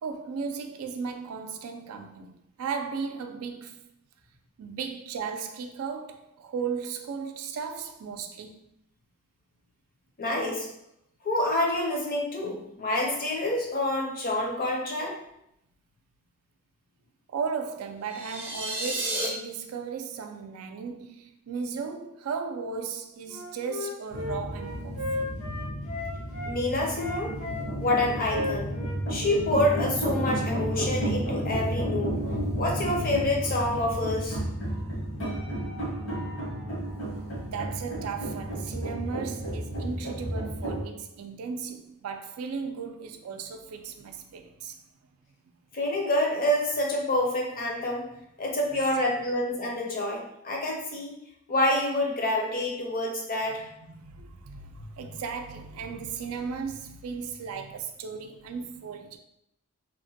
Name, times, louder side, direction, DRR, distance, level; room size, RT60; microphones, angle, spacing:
voice 1, 0.0-3.9 4.6-8.6 17.3-25.3 37.3-44.8 49.0-49.3 53.8-59.2, right 5 dB, 85° right, 0.3 m, -36 dB
voice 2, 10.2-10.7 11.2-15.1 26.5-27.3 27.8-28.7 29.1-32.2 32.6-34.4 45.7-48.1 48.4-51.1 51.5-53.6, left 1 dB, 40° left, 0.6 m, -27 dB
sound 1, 18.1-19.3, right 1 dB, 10° right, 0.3 m, -31 dB
Wind instrument woodwind instrument, 23.3-26.5 26.9-30.3, left 2 dB, 85° left, 0.9 m, -35 dB
sound 2, 24.1-40.8, right 1 dB, 60° left, 0.9 m, -32 dB
2.9 x 2.1 x 2.7 m
head